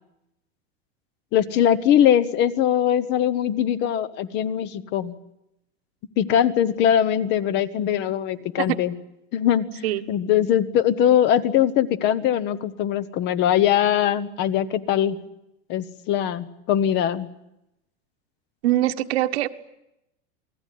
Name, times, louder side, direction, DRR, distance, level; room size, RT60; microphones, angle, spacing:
voice 1, 1.3-5.1 6.2-8.9 9.3-15.2 15.7-17.3, left 10 dB, 35° left, 14 dB, 1.1 m, -21 dB
voice 2, 18.6-19.5, right 14 dB, 70° right, 8 dB, 1.6 m, -23 dB
29.0 x 19.0 x 9.4 m, 0.88 s
supercardioid pair, 165°, 32 cm